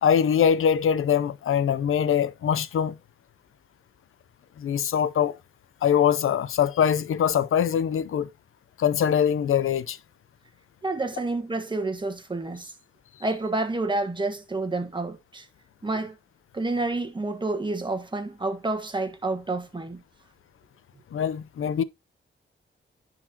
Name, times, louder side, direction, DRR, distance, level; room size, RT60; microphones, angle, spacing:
voice 1, 0.0-3.0 4.6-5.4 5.8-8.3 8.8-10.0 21.1-21.8, left 8 dB, 90° left, 0.6 m, -23 dB
voice 2, 10.8-12.7 13.2-15.5 15.8-16.1 16.5-20.0, right 2 dB, 20° right, 1.4 m, -29 dB
10.0 x 4.1 x 2.8 m
wide cardioid pair, 100°, 21 cm